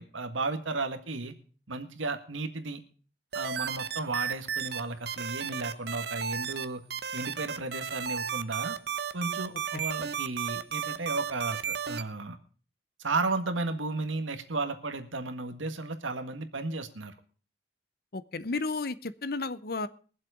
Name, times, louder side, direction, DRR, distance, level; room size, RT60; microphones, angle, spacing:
voice 1, 0.0-1.3 1.7-2.8 3.3-6.8 7.1-8.8 9.1-12.4 13.0-17.1, right 3 dB, 85° right, 7 dB, 1.8 m, -34 dB
sound 1, 3.3-4.8 5.1-6.6 6.9-12.0, right 7 dB, 55° right, 0.9 m, -33 dB
voice 2, 18.1-19.9, left 3 dB, 50° left, 15 dB, 0.8 m, -33 dB
22.0 x 7.6 x 5.0 m, 0.40 s
head